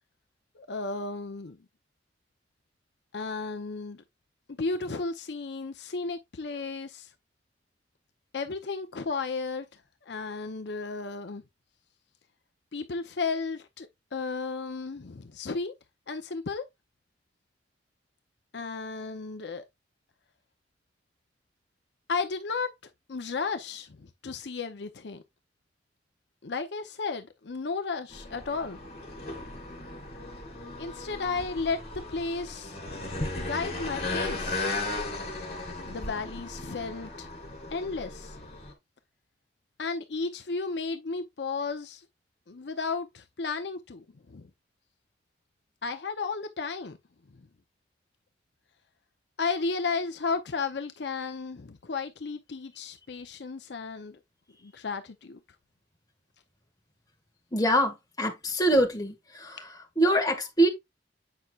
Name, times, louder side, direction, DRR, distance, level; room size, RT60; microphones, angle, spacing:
voice 1, 0.6-1.6 3.1-4.0 4.6-7.1 8.3-9.8 10.1-11.4 12.7-15.7 16.1-16.6 18.5-19.6 22.1-22.7 23.1-25.2 26.4-28.8 30.8-31.8 32.1-34.6 35.9-38.4 39.8-42.1 42.5-44.5 45.8-47.0 47.3-47.4 49.4-54.2 54.6-55.4, left 4 dB, 65° left, 0.7 m, -34 dB
sound 1, 28.1-38.7, left 2 dB, 35° left, 2.7 m, -36 dB
voice 2, 57.5-60.7, right 1 dB, 20° left, 1.7 m, -25 dB
8.0 x 5.7 x 2.4 m
head